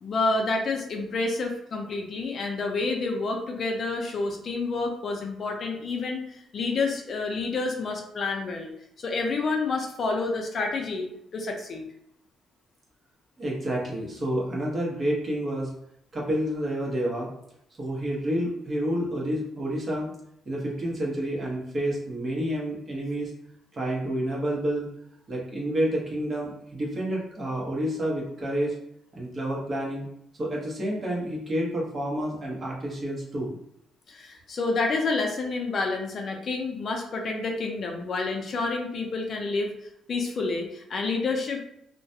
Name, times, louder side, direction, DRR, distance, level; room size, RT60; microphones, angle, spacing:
voice 1, 0.0-8.7 9.0-11.1 11.3-11.8 34.1-39.7 40.1-41.6, left 3 dB, 55° left, 2 dB, 0.5 m, -29 dB
voice 2, 13.4-15.7 16.1-17.3 17.8-20.1 20.4-23.3 23.7-24.9 25.3-28.7 29.1-30.1 30.4-33.6, right 1 dB, 40° right, -4 dB, 0.9 m, -29 dB
2.3 x 2.2 x 2.7 m, 0.75 s
cardioid pair, 90°, 0 cm